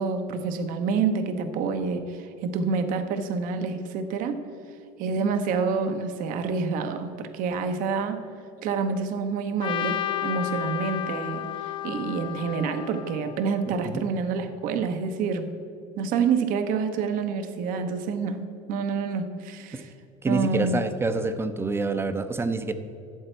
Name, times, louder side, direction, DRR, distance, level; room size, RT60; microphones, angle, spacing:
voice 1, 0.0-4.4 5.0-8.2 8.6-15.5 16.0-18.4 18.7-19.9 20.3-20.8, right 5 dB, 60° right, 8 dB, 0.9 m, -27 dB
Trumpet, 9.6-13.8, left 12 dB, 30° left, 0.3 m, -32 dB
voice 2, 13.7-14.0 19.7-19.8 20.2-22.7, right 3 dB, 15° right, 11 dB, 0.6 m, -27 dB
12.0 x 7.9 x 4.5 m, 2.7 s
supercardioid pair, 115°, 16 cm